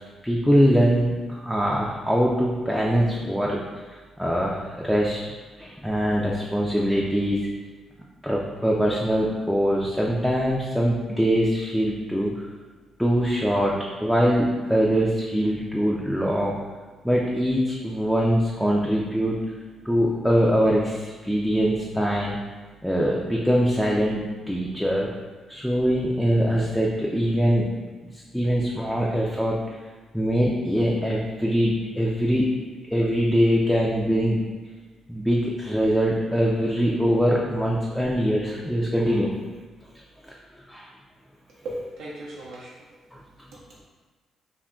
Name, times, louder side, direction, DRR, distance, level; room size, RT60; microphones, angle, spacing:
voice 1, 0.2-3.6 4.2-5.2 5.6-7.5 8.2-12.3 13.0-16.6 17.0-19.4 19.8-22.4 22.8-25.1 25.5-27.7 28.0-29.6 30.1-32.5 32.9-34.4 35.1-39.3 40.2-40.3 40.7-40.9 43.1-43.2, equal, ahead, -4 dB, 0.3 m, -23 dB
voice 2, 41.6-43.0 43.5-43.6, right 1 dB, 85° right, -6 dB, 0.5 m, -37 dB
2.3 x 2.1 x 3.6 m, 1.3 s
cardioid pair, 90°, 0 cm